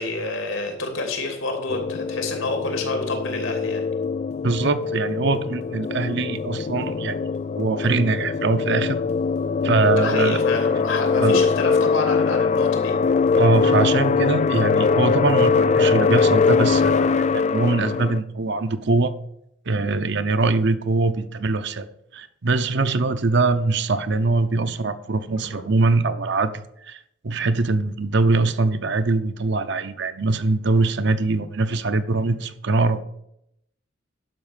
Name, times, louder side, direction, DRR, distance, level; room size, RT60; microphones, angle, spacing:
voice 1, 0.0-3.9 9.9-12.9 20.4-20.6 22.7-23.0, left 2 dB, 90° left, 4 dB, 2.8 m, -28 dB
sound 1, 1.7-18.2, left 5 dB, 35° left, 0.3 m, -22 dB
voice 2, 4.4-7.2 7.6-9.0 9.6-10.4 11.2-11.4 13.4-19.1 19.7-21.9 22.1-33.0, right 3 dB, 60° right, 10 dB, 0.8 m, -22 dB
11.5 x 5.2 x 7.3 m, 0.78 s
head